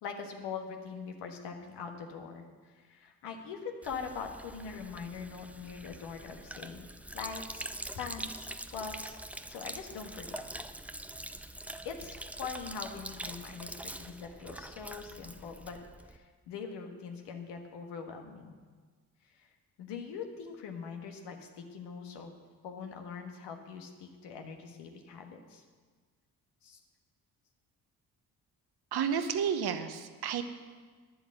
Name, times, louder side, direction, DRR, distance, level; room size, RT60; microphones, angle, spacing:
voice 1, 0.0-6.9 7.1-7.7 7.9-9.2 9.5-10.4 11.8-15.8 16.1-18.6 19.2-19.5 19.8-22.3 22.6-25.6 26.6-26.8, left 6 dB, 75° left, 4 dB, 1.5 m, -42 dB
Sink (filling or washing), 3.8-16.2, right 1 dB, 5° right, 0.6 m, -44 dB
voice 2, 28.9-30.4, right 7 dB, 65° right, 8 dB, 1.1 m, -31 dB
10.5 x 7.9 x 7.7 m, 1.5 s
hypercardioid pair, 45°, 42 cm